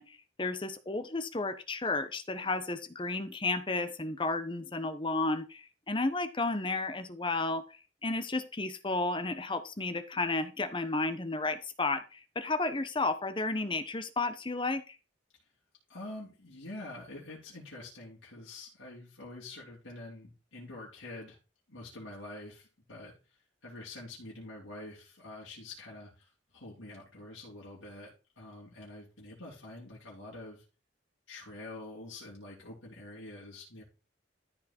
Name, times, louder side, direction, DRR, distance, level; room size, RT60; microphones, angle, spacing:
voice 1, 0.0-7.6 8.0-15.0, left 3 dB, 25° left, 10 dB, 0.9 m, -32 dB
voice 2, 15.9-21.4 21.7-23.1 23.6-30.6 31.3-33.8, left 2 dB, 85° left, -5 dB, 3.5 m, -46 dB
13.5 x 4.6 x 4.4 m, 0.32 s
head